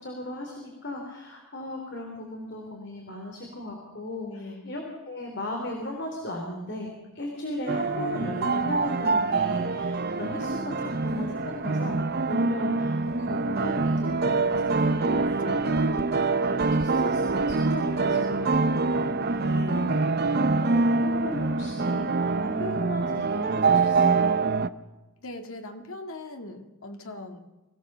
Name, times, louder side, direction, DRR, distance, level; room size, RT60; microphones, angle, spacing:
voice 1, 0.0-6.9 7.1-12.0 12.3-16.0 16.4-20.0 20.3-24.3, left 1 dB, 50° left, 1 dB, 3.5 m, -36 dB
voice 2, 4.2-4.7 15.2-15.9 19.5-20.0 25.2-27.4, left 2 dB, 75° left, 6 dB, 2.1 m, -40 dB
sound 1, 7.7-24.7, right 3 dB, 45° right, 0.7 m, -25 dB
23.5 x 16.0 x 6.8 m, 1.1 s
head